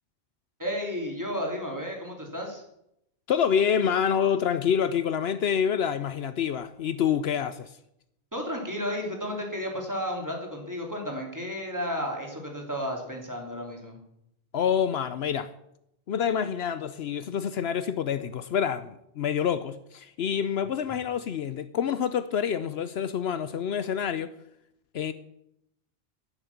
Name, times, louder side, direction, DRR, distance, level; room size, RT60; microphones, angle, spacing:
voice 1, 0.6-2.6 8.3-14.0, equal, 15° right, 3.2 m, -33 dB
voice 2, 3.3-7.7 14.5-15.5 16.1-24.3 24.9-25.1, left 8 dB, 70° left, 0.9 m, -27 dB
10.0 x 9.8 x 7.2 m
omnidirectional pair, 1.1 m